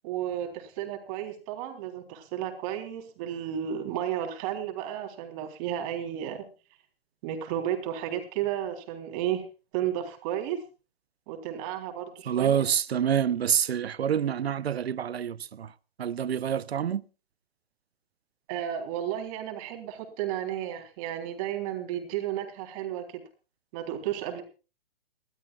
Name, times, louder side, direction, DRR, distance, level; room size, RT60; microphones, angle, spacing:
voice 1, 0.0-6.4 7.2-9.4 9.7-10.6 11.3-12.6 18.5-23.2 23.7-24.4, right 10 dB, 35° right, 3.8 m, -33 dB
voice 2, 12.3-15.7 16.0-17.0, right 8 dB, 80° right, 0.9 m, -27 dB
29.5 x 13.0 x 2.4 m
hypercardioid pair, 140°, 31 cm